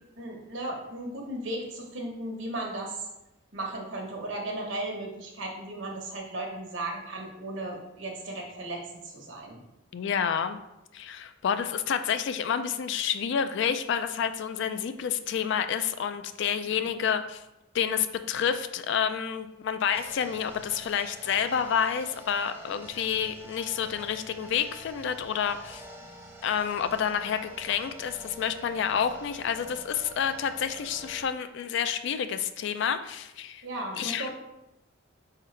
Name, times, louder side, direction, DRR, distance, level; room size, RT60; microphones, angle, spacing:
voice 1, 0.2-3.0 3.5-9.6 16.8-16.9 33.6-34.3, right 1 dB, 65° right, 0 dB, 1.0 m, -36 dB
voice 2, 9.9-10.6 10.9-17.4 17.7-25.8 26.4-33.6 34.0-34.3, left 8 dB, 60° left, 10 dB, 0.3 m, -29 dB
sound 1, 19.9-31.2, equal, 10° right, 0.6 m, -47 dB
4.4 x 3.8 x 3.2 m, 0.92 s
head